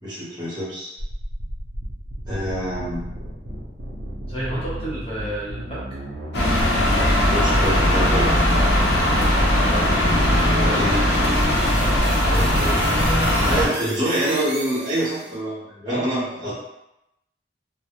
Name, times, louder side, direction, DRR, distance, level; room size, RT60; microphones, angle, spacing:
voice 1, 0.0-0.9 2.3-3.0 7.2-8.4 10.7-11.0 12.6-12.7 13.5-16.5, equal, 25° right, -8 dB, 0.9 m, -26 dB
sound 1, 1.0-15.4, right 1 dB, 70° right, 0.5 m, -34 dB
voice 2, 4.3-6.0 9.7-9.9 10.5-10.9 11.9-12.8 15.8-16.1 16.4-16.5, right 1 dB, 35° left, -7 dB, 0.8 m, -31 dB
sound 2, 6.3-13.7, left 1 dB, 70° left, 0.6 m, -19 dB
2.2 x 2.0 x 2.9 m, 0.86 s
head